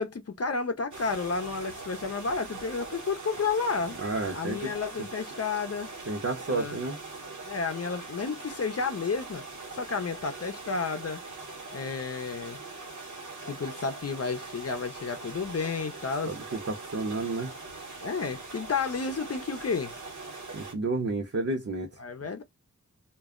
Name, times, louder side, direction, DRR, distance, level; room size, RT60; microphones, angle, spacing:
voice 1, 0.0-4.0 4.3-5.9 6.5-6.8 7.5-9.4 9.7-11.2 11.7-12.6 13.5-16.3 18.0-19.9 22.0-22.4, left 4 dB, 55° left, 0.6 m, -31 dB
sound 1, 0.9-20.7, right 3 dB, 80° right, 1.0 m, -42 dB
voice 2, 4.0-4.7 6.1-7.0 16.3-17.5 20.5-21.9, right 3 dB, 55° right, 0.8 m, -31 dB
2.3 x 2.0 x 3.5 m
wide cardioid pair, 65°, 30 cm